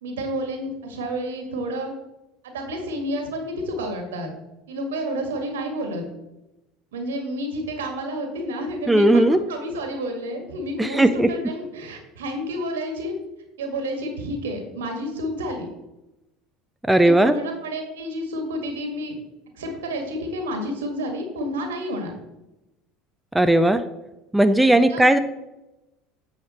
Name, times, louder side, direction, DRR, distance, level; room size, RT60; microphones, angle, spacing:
voice 1, 0.0-1.9 2.4-4.3 4.7-6.0 6.9-13.2 13.6-15.7 17.0-19.1 19.6-22.1 24.9-25.1, equal, 80° right, 4 dB, 1.7 m, -30 dB
voice 2, 8.9-9.4 10.8-11.3 16.9-17.3 23.3-23.8 24.3-25.2, right 1 dB, 5° right, 9 dB, 0.5 m, -16 dB
8.5 x 5.0 x 4.3 m, 0.95 s
hypercardioid pair, 75°, 0 cm